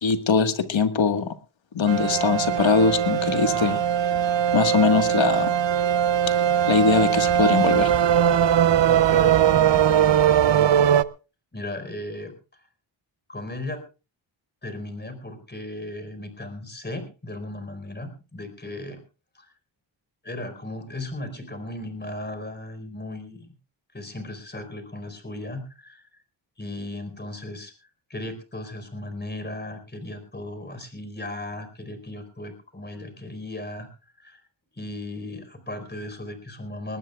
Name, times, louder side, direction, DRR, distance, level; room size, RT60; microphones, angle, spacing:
voice 1, 0.0-1.3 1.7-3.8 4.5-5.5 6.6-7.9, left 5 dB, 65° left, 8 dB, 1.7 m, -21 dB
sound 1, 1.9-11.0, right 10 dB, 60° right, 0.7 m, -20 dB
voice 2, 8.9-10.9 11.5-12.3 13.3-13.8 14.6-19.0 19.3-19.5 20.2-23.5 23.9-26.0 26.6-27.7 28.1-33.9 34.2-34.4 34.7-37.0, left 1 dB, 20° left, 8 dB, 4.5 m, -36 dB
21.0 x 19.0 x 2.4 m, 0.32 s
wide cardioid pair, 90°, 49 cm